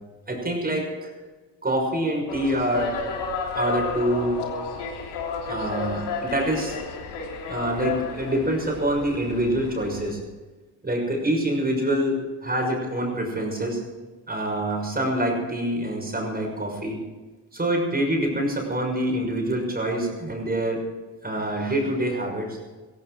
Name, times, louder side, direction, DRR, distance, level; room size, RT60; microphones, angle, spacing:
voice 1, 0.3-1.1 1.6-2.9 3.5-4.4 5.5-6.8 7.5-10.2 10.8-13.8 14.3-17.0 17.5-20.8 21.2-22.6, right 1 dB, 20° right, 1 dB, 6.2 m, -26 dB
sound 1, 2.3-10.1, left 5 dB, 80° left, 3.2 m, -32 dB
16.5 x 16.0 x 4.8 m, 1.3 s
cardioid pair, 85°, 40 cm